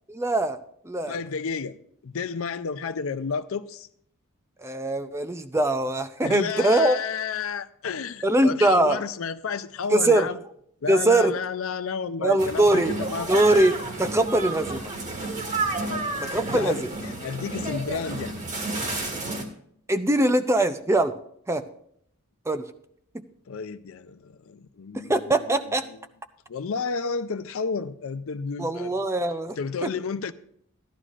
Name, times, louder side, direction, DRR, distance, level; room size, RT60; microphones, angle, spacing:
voice 1, 0.1-0.6 0.9-1.2 4.6-7.0 8.2-9.0 9.9-10.3 10.9-11.3 12.2-12.9 13.3-14.9 16.3-16.9 19.9-21.1 21.5-21.6 22.5-22.6 25.1-25.8 28.6-29.6 29.8-29.9, right 1 dB, 10° right, 0.4 m, -22 dB
voice 2, 1.1-1.8 2.0-3.9 6.2-10.4 10.8-13.4 15.8-18.3 23.5-25.6 25.9-26.0 26.5-28.9 29.6-30.3, left 5 dB, 65° left, 0.5 m, -31 dB
sound 1, 12.4-19.4, right 2 dB, 35° right, 1.8 m, -31 dB
16.0 x 11.5 x 2.5 m
head